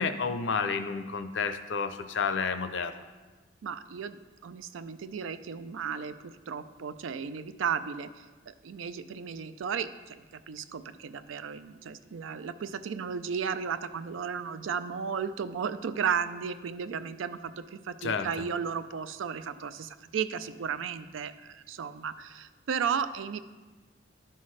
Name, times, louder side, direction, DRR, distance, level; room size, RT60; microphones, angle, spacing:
voice 1, 0.0-2.9 18.0-18.3, left 5 dB, 75° left, 10 dB, 0.5 m, -30 dB
voice 2, 3.6-23.4, right 7 dB, 90° right, 13 dB, 0.4 m, -34 dB
12.0 x 5.6 x 3.2 m, 1.3 s
head